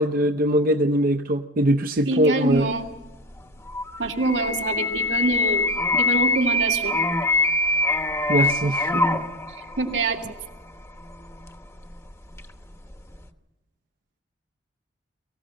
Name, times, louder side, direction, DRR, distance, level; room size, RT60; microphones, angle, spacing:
voice 1, 0.0-2.7 8.3-9.0, right 1 dB, 50° right, 6 dB, 0.7 m, -21 dB
voice 2, 2.1-2.9 4.0-7.0 9.6-10.2, right 2 dB, 85° right, 1 dB, 2.3 m, -25 dB
sound 1, 3.4-12.5 12.9-13.2, left 2 dB, 15° left, 0.9 m, -24 dB
23.0 x 15.0 x 7.6 m, 1.1 s
head